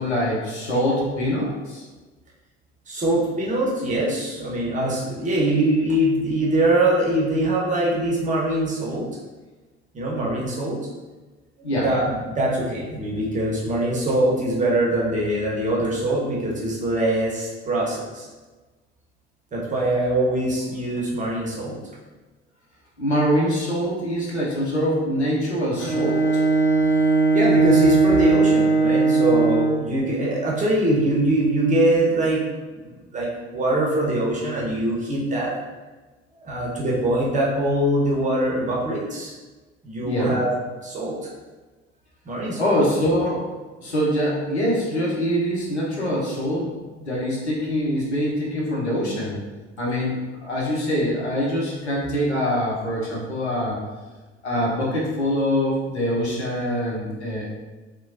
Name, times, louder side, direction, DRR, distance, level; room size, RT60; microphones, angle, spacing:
voice 1, 0.0-1.8 11.6-11.9 23.0-26.4 40.0-40.4 42.6-43.4 43.8-49.4 49.8-53.8 54.4-57.5, equal, 85° left, -5 dB, 0.7 m, -24 dB
voice 2, 2.9-9.1 9.9-10.8 11.6-18.3 19.5-21.8 27.3-32.4 32.8-35.5 36.3-39.4 39.8-40.5 40.8-41.2 42.3-42.6, right 1 dB, 25° right, -4 dB, 0.8 m, -23 dB
Bowed string instrument, 25.8-29.9, right 3 dB, 5° left, 0.8 m, -18 dB
3.0 x 2.2 x 2.5 m, 1.2 s
figure-of-eight pair, 60°, 32 cm